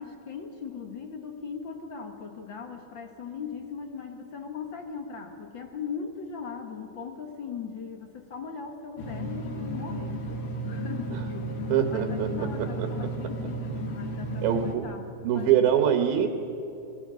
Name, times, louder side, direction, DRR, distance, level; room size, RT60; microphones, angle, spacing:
voice 1, 0.0-10.2 10.7-11.5 11.9-15.6, left 6 dB, 80° left, 4 dB, 1.0 m, -39 dB
sound 1, 9.0-14.8, right 1 dB, 60° left, 3.5 m, -33 dB
voice 2, 11.7-12.5 14.4-14.8 15.2-16.3, right 9 dB, 75° right, 6 dB, 3.0 m, -23 dB
28.5 x 21.0 x 6.3 m, 2.9 s
omnidirectional pair, 4.5 m